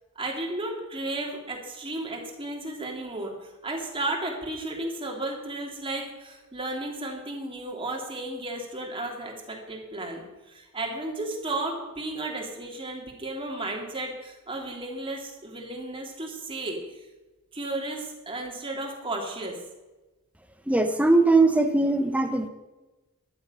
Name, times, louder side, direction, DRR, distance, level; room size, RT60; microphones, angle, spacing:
voice 1, 0.1-17.0 17.5-19.6, right 2 dB, 25° right, 0 dB, 2.9 m, -34 dB
voice 2, 20.7-22.5, right 2 dB, 5° right, 7 dB, 1.1 m, -20 dB
14.0 x 11.0 x 5.7 m, 1.1 s
head